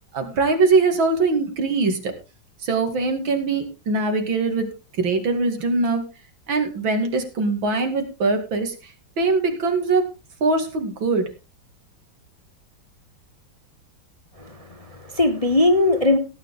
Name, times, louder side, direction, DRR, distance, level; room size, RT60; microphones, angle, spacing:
voice 1, 0.1-2.1 2.6-4.7 5.0-6.0 6.5-8.9 9.2-10.1 10.4-11.3, right 3 dB, 80° right, 3.0 m, -22 dB
voice 2, 14.4-16.2, left 2 dB, 25° left, 0.9 m, -20 dB
17.0 x 9.4 x 3.6 m
omnidirectional pair, 2.1 m